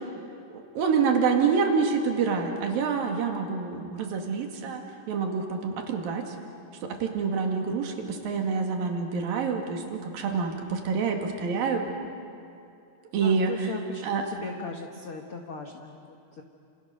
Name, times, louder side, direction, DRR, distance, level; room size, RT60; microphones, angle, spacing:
voice 1, 0.5-4.8 5.1-6.4 6.8-11.9 13.1-13.7 14.0-14.2, right 5 dB, 60° right, 2 dB, 3.9 m, -27 dB
voice 2, 13.2-16.4, left 4 dB, 65° left, 3 dB, 1.3 m, -39 dB
30.0 x 28.0 x 6.7 m, 2.5 s
omnidirectional pair, 4.8 m